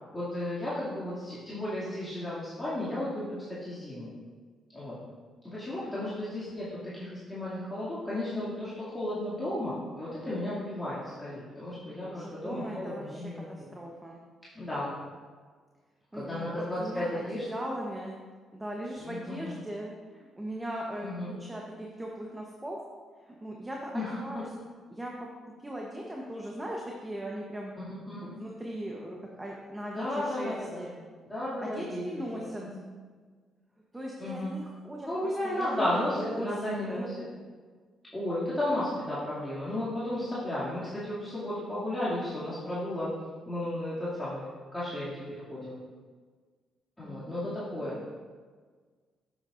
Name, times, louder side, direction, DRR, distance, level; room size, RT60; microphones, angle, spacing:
voice 1, 0.1-4.1 4.7-5.0 5.5-13.7 14.5-14.9 16.1-17.4 19.0-19.5 21.0-21.4 23.9-24.2 27.8-28.3 29.9-30.9 31.2-32.0 32.3-32.8 34.2-34.5 35.1-37.3 38.1-43.1 43.4-44.5 44.7-45.8 47.0-47.9, left 1 dB, 10° left, -11 dB, 2.5 m, -34 dB
voice 2, 12.1-14.2 16.1-18.1 18.5-22.8 23.2-24.4 24.9-25.3 25.6-27.7 28.2-30.9 31.6-32.6 33.9-37.1 47.0-47.2 47.8-48.1, right 1 dB, 15° right, -2 dB, 1.0 m, -39 dB
8.8 x 8.3 x 2.6 m, 1.5 s
cardioid pair, 90°, 0 cm